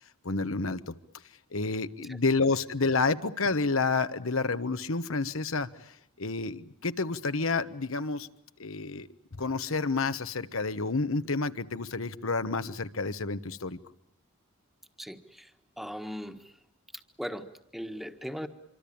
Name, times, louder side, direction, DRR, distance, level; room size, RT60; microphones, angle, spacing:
voice 1, 0.2-0.9 1.5-8.3 8.6-9.1 9.4-13.8, left 3 dB, 70° left, 12 dB, 1.2 m, -29 dB
voice 2, 15.0-16.6 17.2-18.5, equal, ahead, 7 dB, 1.5 m, -39 dB
26.0 x 24.5 x 8.7 m, 0.74 s
head